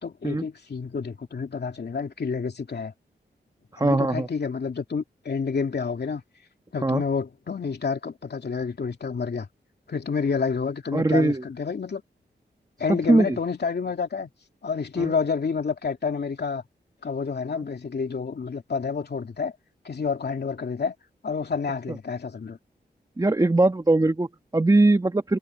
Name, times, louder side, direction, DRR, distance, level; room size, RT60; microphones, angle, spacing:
voice 1, 0.0-2.9 3.8-6.2 6.7-9.5 9.9-12.0 12.8-14.3 14.6-16.6 17.0-19.5 19.8-20.9 21.2-22.6, left 5 dB, 65° left, 2.7 m, -29 dB
voice 2, 3.7-4.3 6.8-7.0 10.9-11.4 12.9-13.4 15.0-15.1 21.9-22.0 23.2-25.4, right 2 dB, 20° right, 1.5 m, -21 dB
cardioid pair, 70°, 18 cm